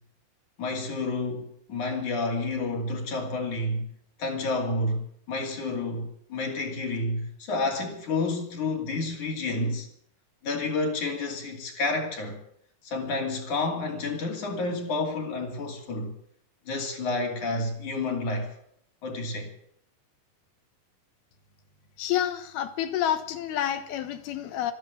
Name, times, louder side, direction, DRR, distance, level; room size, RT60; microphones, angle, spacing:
voice 1, 0.6-3.9 4.2-9.9 10.4-12.4 12.8-16.1 16.7-18.5 19.0-19.5, left 2 dB, 50° left, 3.8 m, -30 dB
voice 2, 22.0-24.7, left 11 dB, 75° left, 3.1 m, -29 dB
13.5 x 12.0 x 8.6 m
omnidirectional pair, 4.5 m